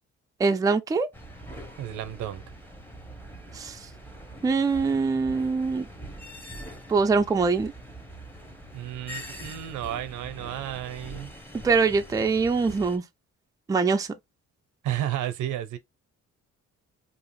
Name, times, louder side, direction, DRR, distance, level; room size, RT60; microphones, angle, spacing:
voice 1, 0.4-1.1 3.5-3.9 4.4-5.9 6.9-7.7 11.6-13.0 13.7-14.1, right 4 dB, 10° right, 0.4 m, -23 dB
sound 1, 1.1-13.0, right 1 dB, 5° left, 0.9 m, -43 dB
voice 2, 1.8-2.4 8.7-11.3 14.8-15.8, right 12 dB, 80° right, 0.6 m, -32 dB
2.7 x 2.4 x 3.1 m
cardioid pair, 90°, 30 cm